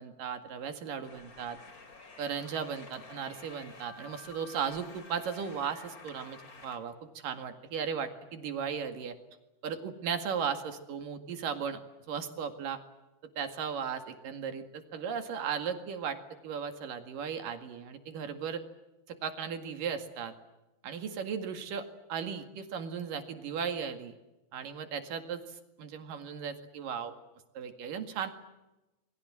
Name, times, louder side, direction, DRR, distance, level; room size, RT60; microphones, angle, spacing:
voice 1, 0.0-1.6 2.2-6.9 7.2-9.2 9.6-11.8 12.1-12.8 13.4-16.2 16.4-18.6 19.1-20.3 20.8-24.1 24.5-27.2 27.6-28.3, right 7 dB, 60° right, 8 dB, 3.5 m, -36 dB
sound 1, 1.0-6.8, left 4 dB, 25° left, 2.4 m, -51 dB
28.5 x 22.5 x 7.6 m, 1.0 s
omnidirectional pair, 4.6 m